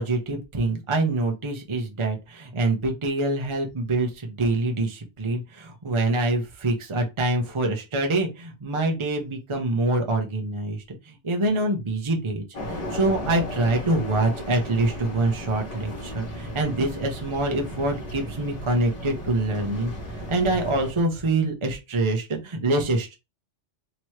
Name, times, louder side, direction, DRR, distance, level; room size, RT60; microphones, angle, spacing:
voice 1, 0.0-23.1, right 2 dB, 30° right, 4 dB, 0.8 m, -25 dB
sound 1, 12.5-20.9, equal, 35° left, 1.1 m, -35 dB
3.0 x 3.0 x 4.6 m, 0.25 s
omnidirectional pair, 1.2 m